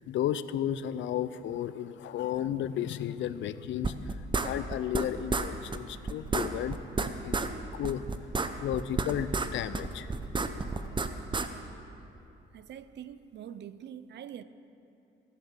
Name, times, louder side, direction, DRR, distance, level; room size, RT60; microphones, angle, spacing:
voice 1, 0.1-6.8 7.2-7.4 7.7-10.5 10.9-11.0, left 10 dB, 70° left, 14 dB, 0.5 m, -34 dB
sound 1, 3.8-5.0 5.3-5.5 5.7-5.8 6.1-7.5 7.8-9.5 9.7-11.5, right 4 dB, 25° right, 0.7 m, -30 dB
voice 2, 12.5-14.4, right 9 dB, 60° right, 14 dB, 0.6 m, -44 dB
15.5 x 7.5 x 7.3 m, 2.8 s
cardioid pair, 90°, 20 cm